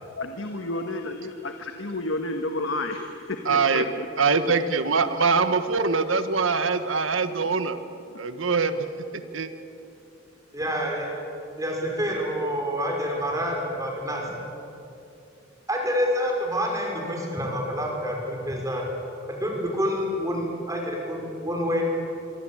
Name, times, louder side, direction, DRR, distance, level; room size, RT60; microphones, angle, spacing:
voice 1, 0.2-4.1 4.4-4.5 8.1-8.2, left 2 dB, 75° left, 5 dB, 1.6 m, -31 dB
voice 2, 3.5-3.8 4.2-7.8 8.2-8.8 9.3-9.5, right 4 dB, 80° right, 10 dB, 1.4 m, -23 dB
voice 3, 10.5-11.1 11.6-14.3 15.7-18.8 19.2-21.8, equal, 15° right, 0 dB, 5.7 m, -27 dB
26.0 x 24.0 x 8.8 m, 2.8 s
head